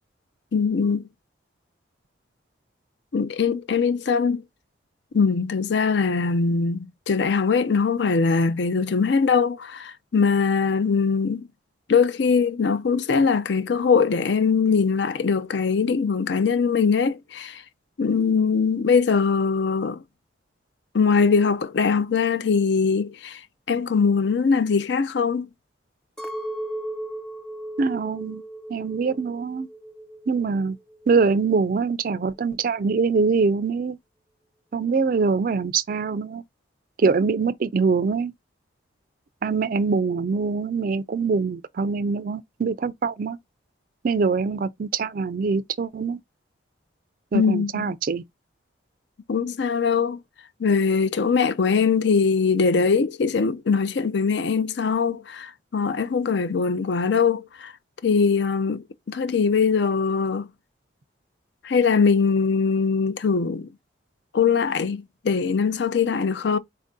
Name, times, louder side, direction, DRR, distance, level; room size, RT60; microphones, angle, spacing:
voice 1, 0.5-1.1 3.1-4.4 5.1-11.5 11.9-17.6 18.0-20.0 20.9-23.4 23.7-25.5 47.3-47.9 49.3-50.2 50.6-57.7 58.0-60.5 61.6-63.7 64.3-66.6, left 5 dB, 65° left, 0.5 m, -22 dB
Chink clink, 26.2-30.5 30.8-31.6, right 1 dB, 5° left, 0.6 m, -36 dB
voice 2, 27.8-28.4 28.7-29.7 30.3-30.8 31.1-34.0 34.7-36.4 37.0-38.3 39.4-43.4 44.0-46.2 47.3-48.2, right 4 dB, 45° right, 0.4 m, -23 dB
4.3 x 2.6 x 3.7 m
head